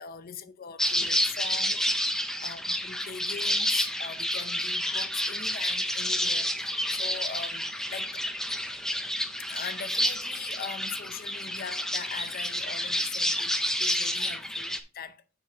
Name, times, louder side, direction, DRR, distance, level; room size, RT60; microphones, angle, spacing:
voice 1, 0.0-8.2 9.4-15.2, left 7 dB, 45° left, 0.6 m, -41 dB
sound 1, 0.8-14.8, equal, 5° left, 0.5 m, -29 dB
7.1 x 5.8 x 3.5 m
head